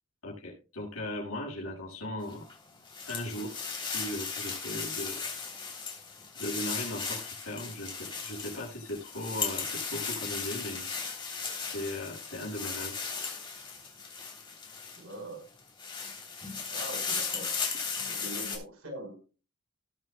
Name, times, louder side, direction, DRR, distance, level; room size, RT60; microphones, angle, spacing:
voice 1, 0.2-2.5 3.1-5.3 6.4-10.9 11.7-12.9, left 1 dB, 80° left, -2 dB, 6.0 m, -38 dB
sound 1, 2.3-15.1 15.6-18.6, left 5 dB, 25° left, 3.1 m, -36 dB
voice 2, 15.0-15.5 16.7-17.6 18.1-19.2, right 1 dB, 85° right, 2 dB, 4.5 m, -42 dB
19.0 x 8.1 x 2.2 m, 0.33 s
head